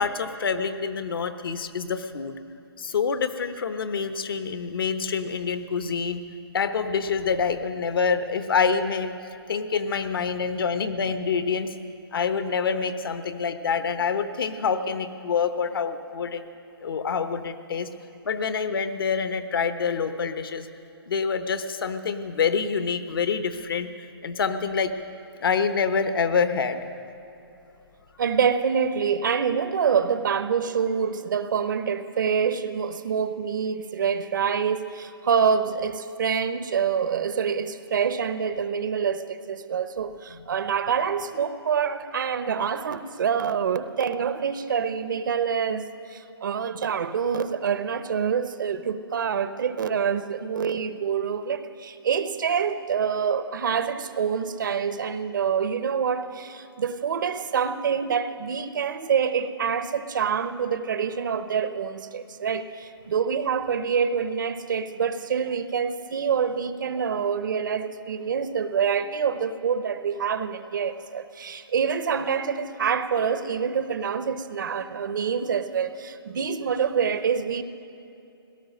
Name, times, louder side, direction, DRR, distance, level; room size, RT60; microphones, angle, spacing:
voice 1, 0.0-2.4 2.8-6.2 6.5-9.1 9.5-11.7 12.1-16.4 16.8-17.9 18.2-20.7 21.1-23.9 24.2-24.9 25.4-26.9, left 5 dB, 60° left, 10 dB, 1.0 m, -26 dB
voice 2, 28.2-77.6, right 7 dB, 50° right, 12 dB, 0.7 m, -26 dB
17.5 x 12.5 x 6.5 m, 2.8 s
hypercardioid pair, 165°, 13 cm